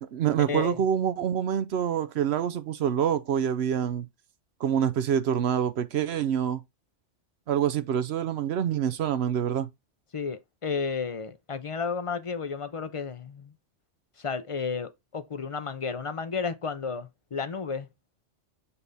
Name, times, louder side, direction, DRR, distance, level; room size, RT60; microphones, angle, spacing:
voice 1, 0.1-4.1 4.6-6.6 7.5-9.7, right 9 dB, 65° right, 0.8 m, -26 dB
voice 2, 10.1-13.5 14.2-17.9, left 5 dB, 35° left, 0.5 m, -32 dB
7.0 x 3.4 x 4.0 m
omnidirectional pair, 1.2 m